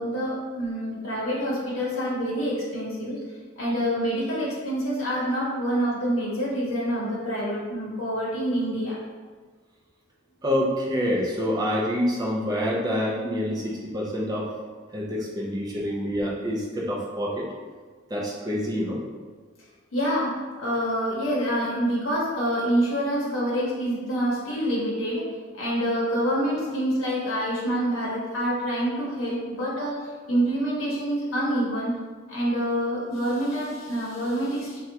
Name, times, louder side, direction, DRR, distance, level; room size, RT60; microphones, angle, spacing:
voice 1, 0.0-3.2 3.6-9.0 19.9-20.3 20.6-25.2 25.5-32.0 32.3-34.8, equal, 80° left, -6 dB, 0.8 m, -26 dB
voice 2, 10.4-14.5 14.9-17.5 18.1-19.0, equal, 20° right, -3 dB, 0.4 m, -27 dB
3.4 x 2.2 x 2.7 m, 1.4 s
head